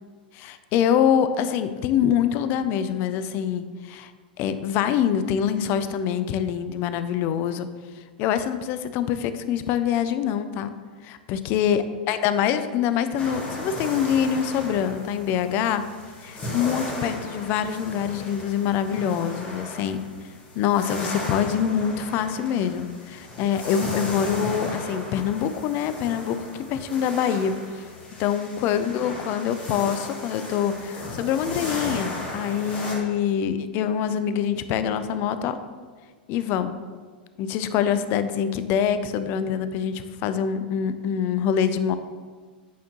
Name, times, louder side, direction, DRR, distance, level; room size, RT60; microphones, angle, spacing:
voice 1, 0.3-4.1 4.4-7.7 8.2-10.7 11.0-15.8 16.2-20.0 20.6-27.8 28.2-35.6 36.3-36.7 37.4-42.0, left 8 dB, 45° left, 11 dB, 0.4 m, -25 dB
sound 1, 13.2-33.0, left 1 dB, 25° left, 1.8 m, -35 dB
8.1 x 4.3 x 3.0 m, 1.5 s
hypercardioid pair, 100°, 5 cm